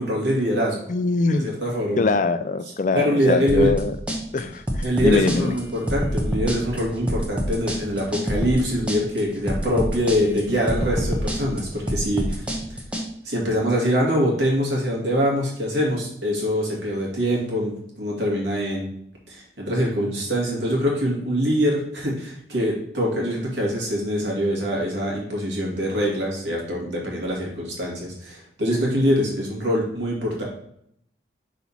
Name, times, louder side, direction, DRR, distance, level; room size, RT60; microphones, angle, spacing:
voice 1, 0.0-0.8 1.3-2.0 2.9-3.7 4.8-12.8 13.2-18.9 19.3-30.4, equal, 80° right, -3 dB, 2.3 m, -24 dB
voice 2, 0.9-1.5 2.0-3.9 4.3-5.5, left 3 dB, 45° left, 11 dB, 0.4 m, -23 dB
sound 1, 3.5-13.1, equal, 5° right, 0.8 m, -27 dB
6.0 x 4.1 x 4.2 m, 0.71 s
head